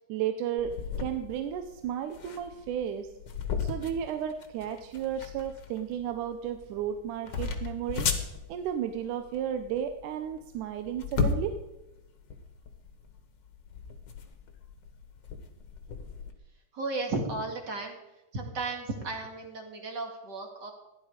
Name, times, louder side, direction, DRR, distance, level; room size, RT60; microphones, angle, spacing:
voice 1, 0.1-3.1 3.6-8.1 8.5-11.6, right 9 dB, 85° right, 7 dB, 2.3 m, -33 dB
sound 1, 0.6-16.3, left 5 dB, 50° left, 1.5 m, -36 dB
voice 2, 16.7-18.0 18.3-20.7, right 3 dB, 40° right, 3 dB, 2.4 m, -34 dB
15.5 x 11.5 x 5.0 m, 0.95 s
omnidirectional pair, 3.5 m